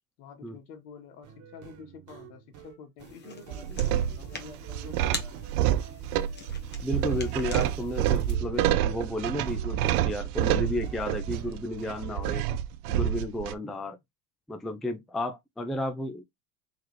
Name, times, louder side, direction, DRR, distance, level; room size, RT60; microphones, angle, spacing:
voice 1, 0.2-5.4, left 5 dB, 70° left, 1.5 m, -48 dB
sound 1, 1.2-12.6, right 8 dB, 40° right, 1.3 m, -51 dB
sound 2, 3.0-8.4, left 4 dB, 20° left, 1.1 m, -43 dB
sound 3, 3.5-13.5, right 11 dB, 70° right, 0.6 m, -28 dB
voice 2, 6.8-12.4 12.9-14.0 14.5-16.2, left 1 dB, ahead, 0.4 m, -33 dB
3.7 x 3.1 x 3.1 m
hypercardioid pair, 95°, 46 cm